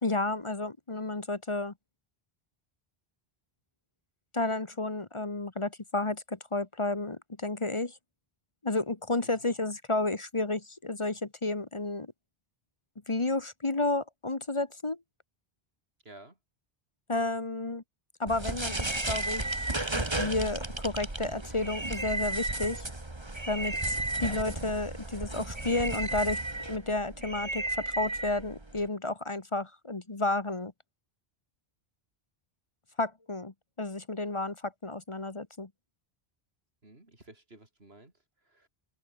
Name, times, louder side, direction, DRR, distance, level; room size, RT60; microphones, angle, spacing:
voice 1, 0.0-1.7 4.3-8.0 8.6-12.1 13.1-15.0 17.1-17.8 18.2-19.7 19.9-22.8 23.5-26.4 26.7-30.7 33.0-35.7, left 2 dB, 30° left, 1.2 m, -31 dB
voice 2, 16.0-16.4 36.8-38.1 38.4-38.7, right 2 dB, 75° right, 4.9 m, -53 dB
sound 1, 18.3-28.9, right 2 dB, 25° right, 2.2 m, -34 dB
open air
omnidirectional pair, 1.0 m